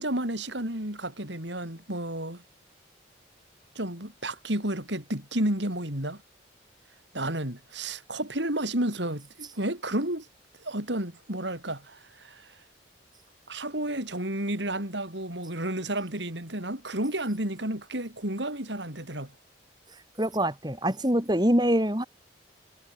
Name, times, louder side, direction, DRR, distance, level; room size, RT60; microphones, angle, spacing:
voice 1, 0.0-2.4 3.7-6.2 7.1-10.3 10.6-12.5 13.5-19.3, right 1 dB, 75° right, 6.8 m, -31 dB
voice 2, 20.2-22.0, equal, 20° right, 5.0 m, -24 dB
head